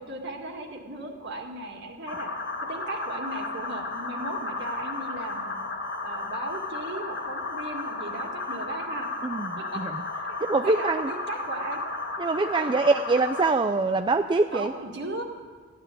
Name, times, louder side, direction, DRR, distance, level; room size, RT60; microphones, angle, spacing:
voice 1, 0.0-2.3 2.7-5.6 6.0-9.1 9.6-9.8 10.3-10.4 10.6-11.8 12.6-12.7 14.5-15.2, right 2 dB, 55° right, 2 dB, 2.0 m, -36 dB
sound 1, 2.1-13.5, left 2 dB, 65° left, 2.1 m, -34 dB
voice 2, 9.2-10.0 10.5-11.1 12.2-14.7, right 3 dB, 25° right, 7 dB, 0.4 m, -24 dB
14.5 x 10.0 x 9.0 m, 1.5 s
head